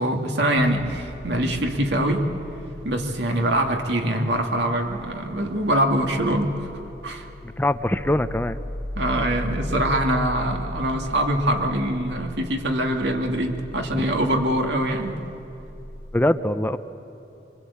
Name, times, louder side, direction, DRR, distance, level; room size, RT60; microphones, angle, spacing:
voice 1, 0.0-2.3 2.8-6.7 7.0-7.3 9.0-15.1, right 1 dB, 65° right, 3 dB, 2.3 m, -23 dB
sound 1, 4.2-16.2, left 1 dB, 80° left, 1.4 m, -38 dB
voice 2, 7.4-8.6 13.9-14.1 16.1-16.8, left 1 dB, 10° left, 10 dB, 0.6 m, -23 dB
25.0 x 23.0 x 8.5 m, 2.9 s
head